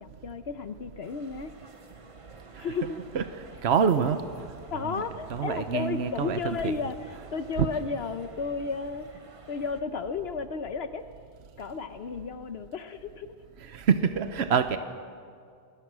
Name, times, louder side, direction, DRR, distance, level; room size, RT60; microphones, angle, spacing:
voice 1, 0.0-1.5 2.6-3.0 4.7-7.0 7.3-9.2 9.5-11.0 11.6-13.3, left 5 dB, 70° left, 10 dB, 1.1 m, -33 dB
sound 1, 1.0-9.8, right 3 dB, 30° right, 1.1 m, -52 dB
voice 2, 3.1-4.3 4.8-5.0 5.3-6.7 7.6-7.7 13.7-14.8, right 6 dB, 75° right, 9 dB, 1.1 m, -26 dB
28.5 x 21.0 x 6.2 m, 2.2 s
omnidirectional pair, 1.1 m